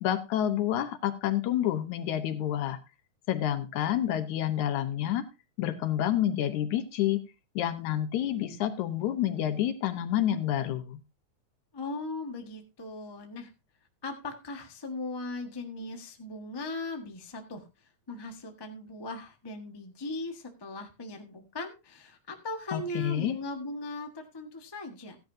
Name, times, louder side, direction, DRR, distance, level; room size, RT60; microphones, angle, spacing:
voice 1, 0.0-2.8 3.3-5.2 5.6-7.2 7.6-11.0 22.7-23.4, left 11 dB, 80° left, 9 dB, 2.4 m, -28 dB
voice 2, 11.7-13.5 14.0-17.6 18.1-25.2, left 2 dB, 40° left, 3 dB, 0.3 m, -38 dB
14.5 x 10.5 x 2.7 m, 0.26 s
omnidirectional pair, 3.4 m